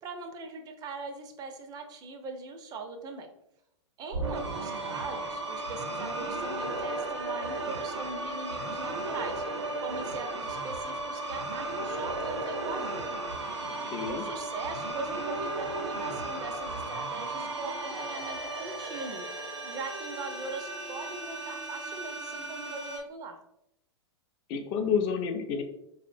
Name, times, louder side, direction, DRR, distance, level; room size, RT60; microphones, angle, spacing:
voice 1, 0.0-3.3 4.0-13.2 14.1-23.4, right 3 dB, 25° right, 5 dB, 0.5 m, -41 dB
sound 1, 4.1-23.0, right 2 dB, 85° right, 0.6 m, -35 dB
voice 2, 13.6-14.2 24.5-25.6, left 6 dB, 40° left, 6 dB, 0.5 m, -30 dB
4.1 x 2.1 x 2.5 m, 0.81 s
figure-of-eight pair, 100°, 14 cm